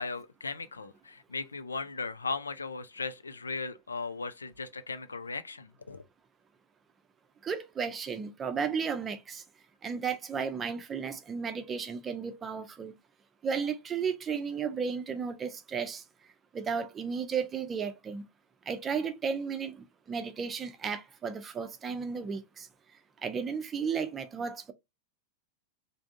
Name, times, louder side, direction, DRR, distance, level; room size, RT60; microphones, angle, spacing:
voice 1, 0.0-6.0, left 4 dB, 75° left, 0.4 m, -37 dB
voice 2, 7.4-9.4 9.8-12.9 13.4-16.0 16.5-18.2 18.7-22.7 23.2-24.7, right 6 dB, 20° right, 0.6 m, -34 dB
3.4 x 2.6 x 2.5 m
figure-of-eight pair, 90°, 0 cm